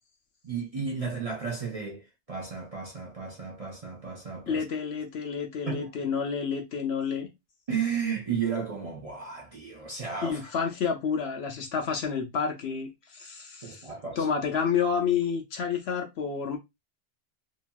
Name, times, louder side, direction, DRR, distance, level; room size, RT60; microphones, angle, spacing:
voice 1, 0.4-4.6 5.7-5.9 7.7-10.5 13.6-14.3, right 6 dB, 35° right, 0.6 m, -33 dB
voice 2, 4.5-7.3 10.2-16.6, left 6 dB, 65° left, 0.7 m, -29 dB
2.8 x 2.7 x 2.2 m
omnidirectional pair, 1.3 m